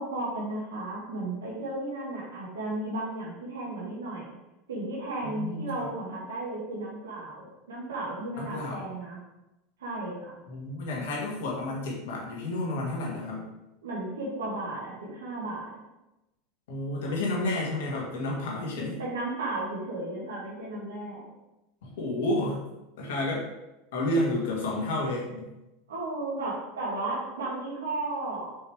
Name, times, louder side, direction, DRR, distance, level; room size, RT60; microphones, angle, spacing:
voice 1, 0.0-4.4 4.7-9.2 9.8-10.4 13.8-15.9 18.8-21.3 25.9-28.5, right 2 dB, 85° right, -5 dB, 1.7 m, -34 dB
voice 2, 5.2-5.9 8.4-8.9 10.5-13.5 16.7-19.0 21.8-22.6 23.0-23.5 23.9-25.5, left 1 dB, 75° left, -3 dB, 1.9 m, -31 dB
5.4 x 5.1 x 3.4 m, 0.95 s
hypercardioid pair, 90°, 0 cm